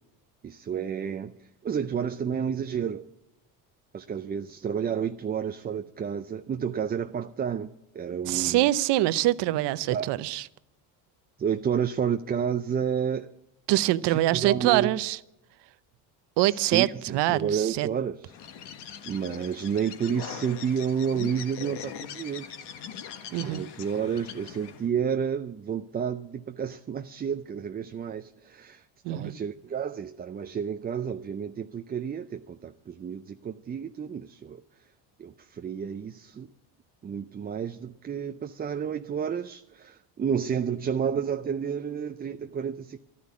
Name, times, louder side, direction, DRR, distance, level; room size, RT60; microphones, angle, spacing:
voice 1, 0.4-1.4 1.6-3.0 3.9-7.7 7.9-8.7 9.9-10.1 11.4-13.3 14.1-15.0 16.5-18.3 19.1-22.6 23.4-34.6 35.2-36.5 37.0-43.0, right 7 dB, 20° right, 0.5 m, -30 dB
voice 2, 8.3-10.5 13.7-15.2 16.4-17.9 23.3-23.6 29.0-29.4, right 16 dB, 70° right, 0.8 m, -24 dB
Bird, 18.3-24.9, left 8 dB, 65° left, 1.5 m, -41 dB
12.5 x 9.7 x 8.4 m
supercardioid pair, 95°, 43 cm